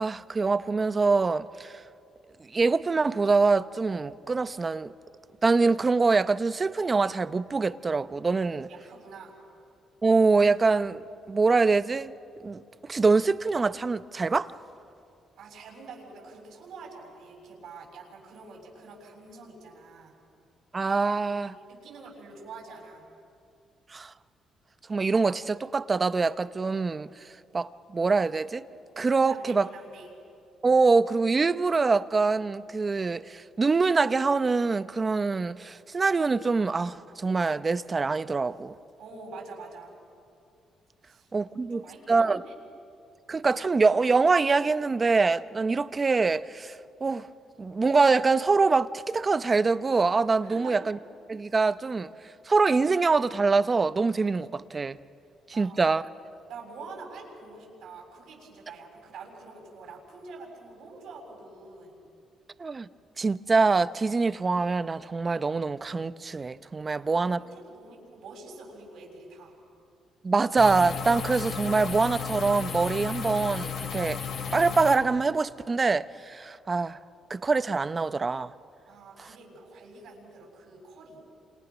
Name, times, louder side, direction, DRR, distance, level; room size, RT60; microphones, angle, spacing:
voice 1, 0.0-1.8 2.4-4.9 5.4-8.7 10.0-12.1 12.4-12.6 12.9-14.5 20.7-21.5 23.9-24.1 24.9-27.1 27.5-28.6 29.0-29.7 30.6-38.7 41.3-41.8 42.1-42.4 43.3-47.3 47.6-51.0 51.3-52.1 52.5-55.0 55.5-56.0 62.6-62.9 63.2-67.4 70.2-74.2 74.5-77.0 77.3-78.5, right 4 dB, 30° right, 0.8 m, -24 dB
voice 2, 8.3-9.3 15.4-20.1 21.4-23.0 29.2-30.1 39.0-39.9 41.0-41.3 41.7-42.6 50.4-50.7 55.5-55.8 56.5-62.0 66.9-69.6 78.9-81.2, right 4 dB, 75° right, 7.0 m, -46 dB
sound 1, 70.6-75.0, left 6 dB, 70° left, 4.1 m, -34 dB
28.5 x 27.5 x 6.3 m
cardioid pair, 90°, 0 cm